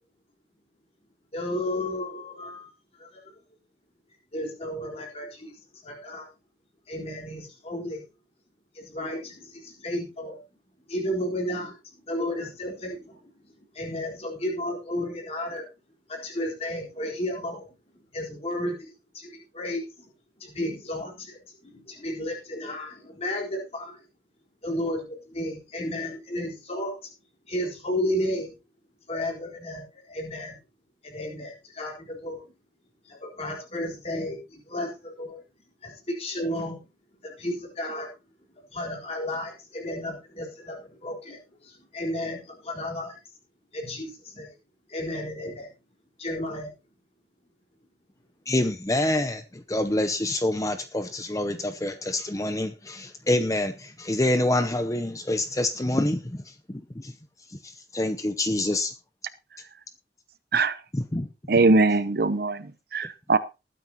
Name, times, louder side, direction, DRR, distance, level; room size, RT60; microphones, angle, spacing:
voice 1, 1.3-2.7 3.0-3.2 4.3-6.3 6.9-8.0 8.7-10.4 10.9-15.7 16.1-17.7 18.1-20.1 20.4-24.0 24.6-26.9 27.5-28.6 29.1-30.5 31.0-32.4 33.1-35.4 35.8-36.8 37.2-38.1 38.7-43.2 43.7-44.6 44.9-45.7 46.2-46.7, left 1 dB, 35° left, -1 dB, 4.1 m, -33 dB
voice 2, 48.5-57.1 57.5-58.9 60.9-61.3, left 1 dB, 20° left, 9 dB, 0.7 m, -27 dB
voice 3, 61.5-63.4, right 3 dB, 55° right, 13 dB, 0.8 m, -21 dB
20.0 x 9.4 x 2.9 m, 0.28 s
head